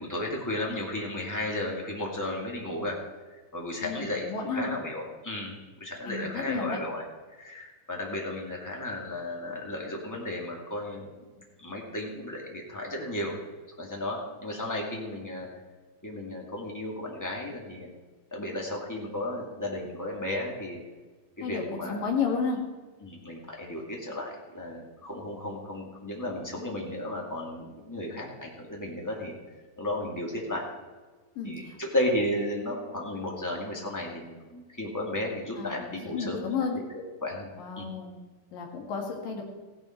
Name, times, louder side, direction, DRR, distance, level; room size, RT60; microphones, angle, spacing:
voice 1, 0.0-3.0 3.5-7.0 7.3-11.1 11.6-13.4 13.8-15.5 16.0-17.9 18.3-20.8 21.4-22.2 23.0-29.3 29.8-30.6 31.4-36.8 37.2-37.5 37.8-37.9, left 1 dB, 5° left, -1 dB, 1.7 m, -34 dB
voice 2, 3.8-4.7 6.1-6.8 21.4-22.6 31.4-31.8 35.6-36.7 37.6-38.2 38.5-39.4, left 5 dB, 80° left, 1 dB, 3.8 m, -32 dB
16.0 x 10.5 x 4.6 m, 1.3 s
omnidirectional pair, 3.9 m